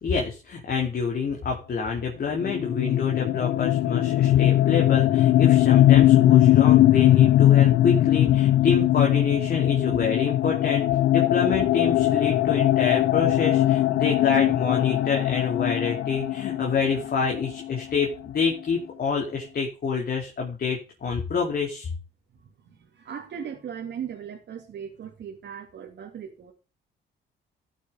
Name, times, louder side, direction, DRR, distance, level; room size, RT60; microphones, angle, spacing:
voice 1, 0.0-10.8 11.1-21.9, left 5 dB, 50° left, 3.2 m, -27 dB
sound 1, 2.4-18.0, left 13 dB, 75° left, 0.7 m, -20 dB
voice 2, 22.3-26.5, right 8 dB, 60° right, 2.5 m, -38 dB
14.0 x 8.3 x 3.6 m
cardioid pair, 90°, 20 cm